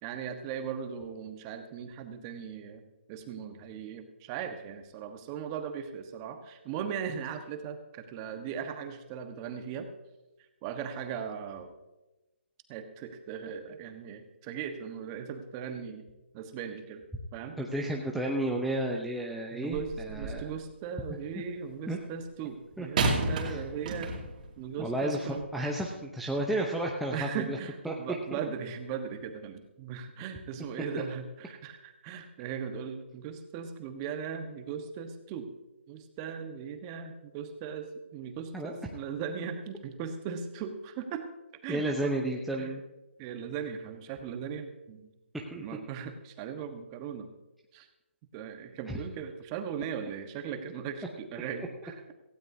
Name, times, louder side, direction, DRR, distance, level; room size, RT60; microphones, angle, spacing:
voice 1, 0.0-2.8 3.1-9.9 10.6-11.7 12.7-16.1 16.3-17.0 17.3-17.6 19.5-24.1 24.6-25.5 27.1-35.5 35.9-41.3 41.6-42.1 42.5-42.7 43.2-45.1 45.5-47.3 47.7-47.9 48.3-52.1, right 7 dB, 25° right, 7 dB, 1.2 m, -38 dB
voice 2, 17.6-20.5 21.9-22.0 22.8-22.9 23.4-23.6 24.8-27.6 27.8-27.9 28.3-28.4 38.5-38.7 41.7-42.8 45.5-45.6 48.9-49.0, right 1 dB, ahead, -2 dB, 0.8 m, -32 dB
sound 1, 19.7-20.5 23.0-24.5 25.3-25.4, right 3 dB, 40° right, 2.4 m, -31 dB
17.5 x 16.0 x 2.8 m, 1.0 s
hypercardioid pair, 150°, 7 cm